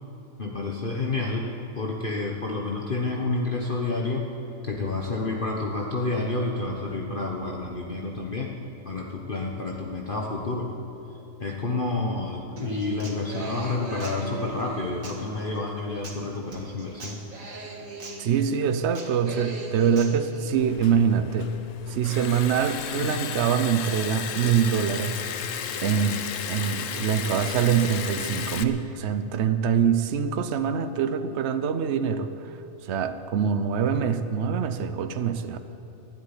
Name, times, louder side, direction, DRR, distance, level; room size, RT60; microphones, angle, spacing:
voice 1, 0.4-1.5 1.7-4.3 4.6-8.6 8.8-10.7 11.4-17.2 22.9-23.1, left 3 dB, 40° left, -1 dB, 1.3 m, -29 dB
Human voice / Acoustic guitar, 12.6-20.5, right 2 dB, 80° right, 2.2 m, -40 dB
voice 2, 18.2-21.5 21.9-25.2 25.8-32.3 32.8-35.6, right 7 dB, 60° right, 10 dB, 1.0 m, -24 dB
Liquid, 20.6-28.6, left 8 dB, 70° left, 1.1 m, -34 dB
12.0 x 12.0 x 9.9 m, 3.0 s
omnidirectional pair, 1.4 m